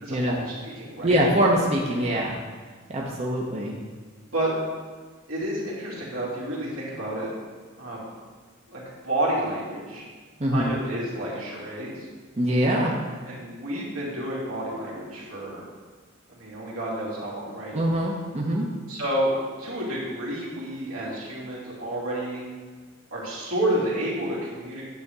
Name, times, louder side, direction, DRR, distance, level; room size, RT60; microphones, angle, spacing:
voice 1, 0.0-1.1 4.3-4.5 5.3-7.3 7.8-8.0 8.7-10.0 10.5-12.1 13.3-15.6 16.3-17.7 18.9-19.3 19.6-22.4 23.1-24.8, right 1 dB, 80° right, -6 dB, 2.6 m, -30 dB
voice 2, 1.0-2.4 2.9-3.8 10.4-10.7 12.4-12.9 17.7-18.7, right 1 dB, 30° right, -2 dB, 0.8 m, -23 dB
9.5 x 3.6 x 6.7 m, 1.5 s
head